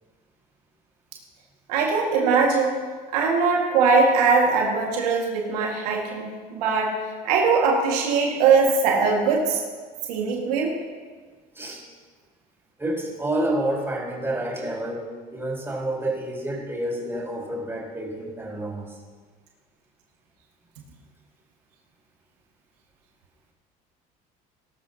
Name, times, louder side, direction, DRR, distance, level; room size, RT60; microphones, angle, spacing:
voice 1, 1.7-2.8 3.1-6.9 7.2-9.6 10.1-10.7, right 4 dB, 85° right, 0 dB, 1.9 m, -21 dB
voice 2, 12.8-19.0, right 1 dB, 10° right, -2 dB, 4.2 m, -29 dB
19.0 x 12.5 x 2.9 m, 1.5 s
hypercardioid pair, 75°, 20 cm